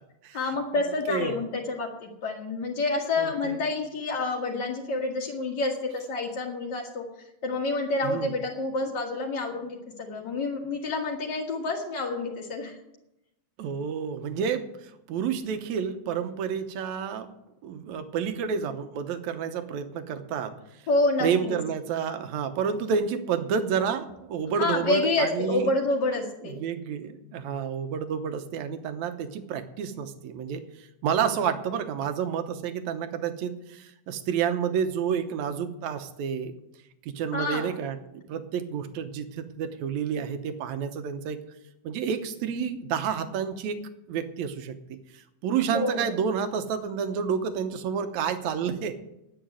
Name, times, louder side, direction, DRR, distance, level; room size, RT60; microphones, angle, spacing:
voice 1, 0.3-7.0 7.4-12.8 20.9-21.6 24.5-26.6 37.3-37.7 45.7-46.1, left 2 dB, 45° left, -3 dB, 1.7 m, -28 dB
voice 2, 3.2-3.6 8.0-8.3 13.6-14.7 15.1-17.3 17.6-20.6 21.2-25.7 26.4-30.6 31.0-36.5 37.0-41.4 41.8-43.8 44.1-44.8 45.4-48.9, right 7 dB, 70° right, 9 dB, 2.2 m, -29 dB
9.8 x 8.9 x 9.5 m, 0.89 s
omnidirectional pair, 3.6 m